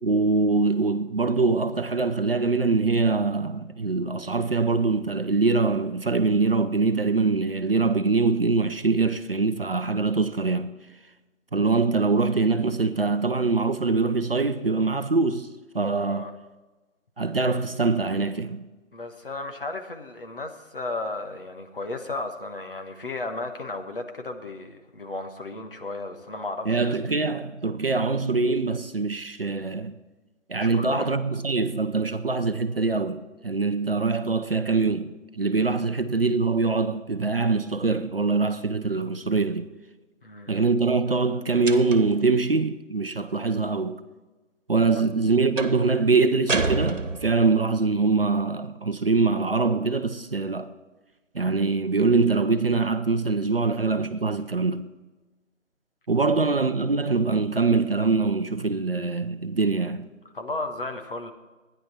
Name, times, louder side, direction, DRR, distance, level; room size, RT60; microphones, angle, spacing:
voice 1, 0.0-10.7 11.5-15.5 15.7-16.3 17.2-18.6 26.7-29.9 30.5-39.7 40.5-44.0 44.7-50.7 51.3-54.9 56.1-60.1, right 3 dB, 45° right, 0.7 m, -23 dB
voice 2, 16.0-16.3 18.9-27.0 30.6-31.2 40.2-40.6 44.9-45.0 56.2-56.4 60.3-61.3, left 2 dB, 45° left, 1.4 m, -34 dB
sound 1, 41.7-42.2 45.6-45.9 46.5-47.6, right 3 dB, 70° right, 1.4 m, -28 dB
13.5 x 10.5 x 4.3 m
figure-of-eight pair, 155°, 39 cm